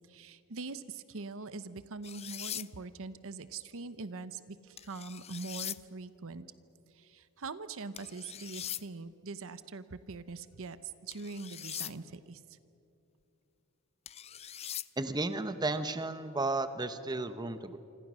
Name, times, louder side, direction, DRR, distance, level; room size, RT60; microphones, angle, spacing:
voice 1, 0.1-6.5 6.9-12.6, right 4 dB, 65° right, 13 dB, 0.9 m, -43 dB
sound 1, 2.0-2.7 4.8-5.8 8.0-8.8 11.1-11.9 14.1-14.9, left 11 dB, 30° left, 0.4 m, -41 dB
voice 2, 15.0-17.8, right 2 dB, 20° right, 11 dB, 0.9 m, -33 dB
27.0 x 25.5 x 6.3 m, 2.8 s
head